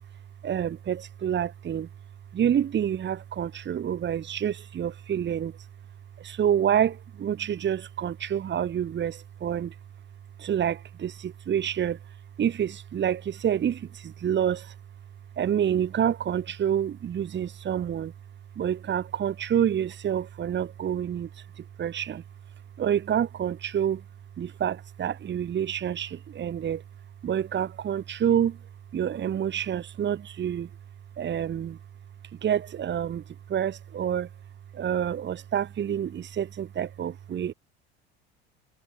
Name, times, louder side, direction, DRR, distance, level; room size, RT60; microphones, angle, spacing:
voice 1, 0.4-1.9 2.3-5.5 6.2-9.7 10.4-12.0 12.4-14.7 15.4-18.1 18.6-21.3 21.6-22.2 22.8-24.0 24.4-26.8 27.2-28.6 28.9-30.7 31.2-31.8 32.4-33.2 33.5-34.3 34.7-37.5, right 9 dB, 35° right, 2.3 m, -28 dB
figure-of-eight pair, 70°, 33 cm